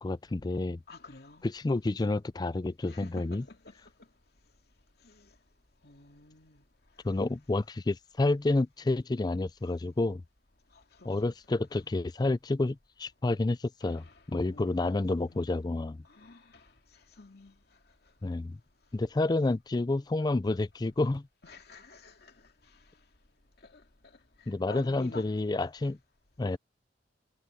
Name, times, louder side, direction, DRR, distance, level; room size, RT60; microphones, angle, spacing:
voice 1, 0.0-0.8 1.4-3.4 7.0-10.2 11.1-16.0 18.2-18.6 18.9-21.3 24.5-26.0 26.4-26.6, left 2 dB, 25° left, 0.4 m, -29 dB
voice 2, 0.9-1.4 2.9-3.7 5.0-5.3 5.8-6.6 10.7-11.1 13.8-14.1 14.5-15.6 16.1-16.7 17.2-17.6 21.4-22.3 23.7-23.8 24.4-25.4, left 2 dB, 60° left, 2.5 m, -49 dB
head